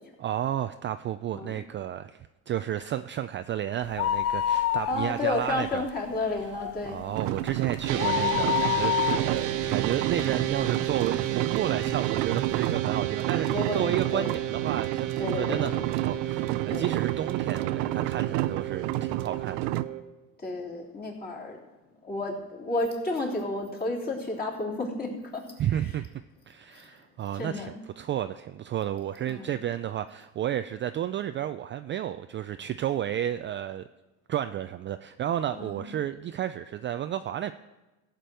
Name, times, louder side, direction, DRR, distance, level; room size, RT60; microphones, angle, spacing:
voice 1, 0.2-5.9 6.9-19.7 25.6-26.1 26.5-33.9 34.3-37.5, right 11 dB, 30° right, 10 dB, 0.4 m, -32 dB
sound 1, 3.8-5.5 5.8-5.9 6.4-10.8 11.3-11.4 12.2-12.3 12.5-12.6, left 11 dB, 40° left, 0.5 m, -28 dB
voice 2, 4.9-7.0 13.5-14.4 15.2-15.8 16.7-16.8 20.4-21.6 22.1-25.4 25.7-25.8 26.7-27.0 27.3-27.7 29.3-29.5 35.5-35.9, left 2 dB, 25° left, -2 dB, 3.2 m, -32 dB
sound 2, 7.2-19.8, right 15 dB, 85° right, 0.6 m, -31 dB
sound 3, 7.9-20.0, right 13 dB, 55° right, 1.2 m, -32 dB
15.5 x 5.2 x 7.6 m, 1.1 s
supercardioid pair, 110°, 37 cm